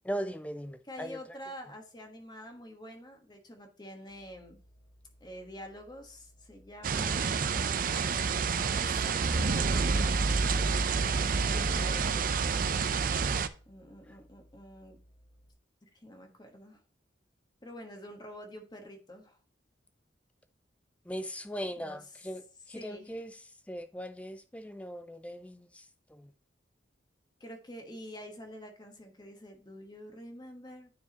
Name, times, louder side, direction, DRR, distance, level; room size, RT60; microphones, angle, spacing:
voice 1, 0.0-1.2 21.1-23.4 23.7-25.8 26.1-26.3, equal, 5° left, 0.4 m, -39 dB
voice 2, 0.8-4.6 5.2-7.3 7.5-7.7 8.7-10.9 11.5-12.3 13.7-15.0 15.8-16.8 17.6-19.4 21.8-22.2 22.7-23.2 27.4-30.9, equal, 25° left, 1.2 m, -47 dB
sound 1, 4.1-15.5, equal, 85° left, 2.2 m, -61 dB
sound 2, 6.8-13.5, right 5 dB, 50° right, 0.5 m, -28 dB
9.4 x 4.7 x 2.9 m
head